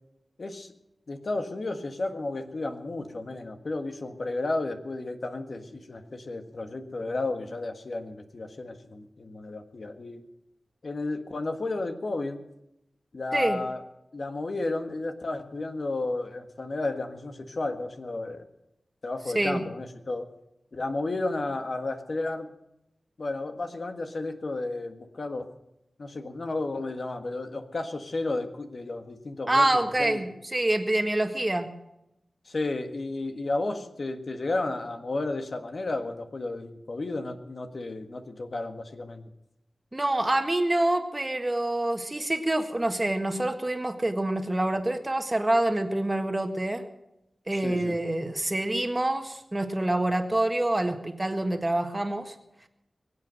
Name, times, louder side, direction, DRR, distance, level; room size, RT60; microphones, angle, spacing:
voice 1, 0.4-0.7 1.1-10.2 10.8-12.5 13.1-13.8 14.1-18.4 19.0-20.3 20.7-22.5 23.2-25.5 26.0-30.2 32.5-39.2 47.5-48.0, left 2 dB, 60° left, 6 dB, 1.6 m, -32 dB
voice 2, 29.5-31.7 39.9-46.8 47.5-52.3, right 1 dB, 25° right, 6 dB, 1.6 m, -26 dB
23.0 x 8.2 x 6.5 m, 0.85 s
cardioid pair, 55°, 0 cm